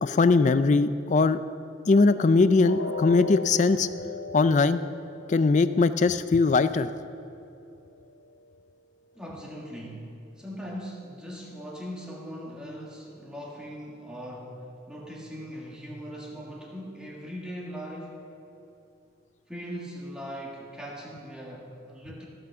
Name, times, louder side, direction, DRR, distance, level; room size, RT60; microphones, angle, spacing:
voice 1, 0.0-1.4 1.9-3.9 4.3-4.8 5.3-6.9, left 3 dB, 40° left, 13 dB, 0.4 m, -21 dB
sound 1, 2.6-8.6 9.0-9.2 9.7-9.8, left 3 dB, 85° left, 0.7 m, -40 dB
voice 2, 9.2-10.1 10.4-18.2 19.5-22.3, equal, 5° right, -3 dB, 1.8 m, -40 dB
15.0 x 6.1 x 6.8 m, 2.9 s
head